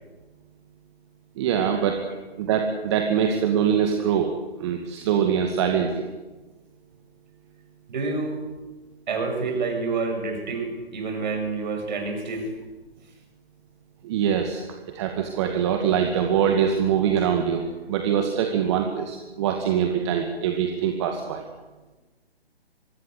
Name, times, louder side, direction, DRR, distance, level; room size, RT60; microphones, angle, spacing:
voice 1, 1.4-2.0 2.4-4.3 4.6-6.0 14.0-21.4, right 8 dB, 25° right, 4 dB, 2.1 m, -23 dB
voice 2, 7.9-8.4 9.1-12.5, right 4 dB, 45° right, 4 dB, 7.6 m, -28 dB
24.5 x 21.5 x 8.2 m, 1.2 s
figure-of-eight pair, 135°, 31 cm